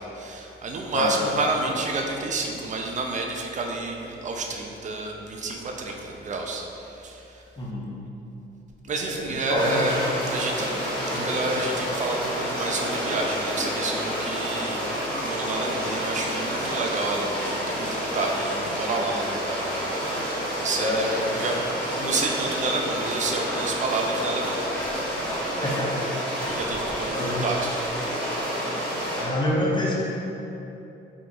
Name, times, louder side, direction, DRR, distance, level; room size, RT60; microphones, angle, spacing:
voice 1, 0.0-7.4 8.8-10.0 10.3-10.7 11.1-14.8 15.2-25.3 26.4-27.7, right 3 dB, 40° right, 1 dB, 0.4 m, -30 dB
voice 2, 7.6-7.9 9.0-9.8 11.1-11.3 20.8-21.0 25.6-26.0 27.1-27.4 29.1-30.0, left 1 dB, 25° left, -5 dB, 0.6 m, -27 dB
sound 1, 9.5-29.2, equal, 5° left, 1.4 m, -29 dB
3.0 x 2.4 x 3.6 m, 2.9 s
cardioid pair, 90°, 20 cm